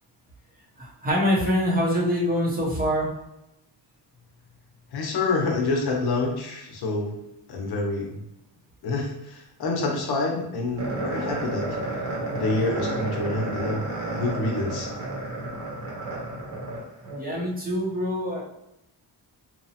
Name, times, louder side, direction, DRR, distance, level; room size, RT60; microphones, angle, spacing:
voice 1, 0.8-3.1 17.2-18.4, equal, 20° right, -5 dB, 0.7 m, -24 dB
voice 2, 4.9-7.1 7.5-8.1 8.8-11.8 12.3-13.8 14.1-14.9, left 3 dB, 60° left, 0 dB, 0.7 m, -27 dB
sound 1, 10.8-17.2, right 2 dB, 55° right, 0.9 m, -31 dB
2.9 x 2.1 x 2.7 m, 0.85 s
wide cardioid pair, 160°, 42 cm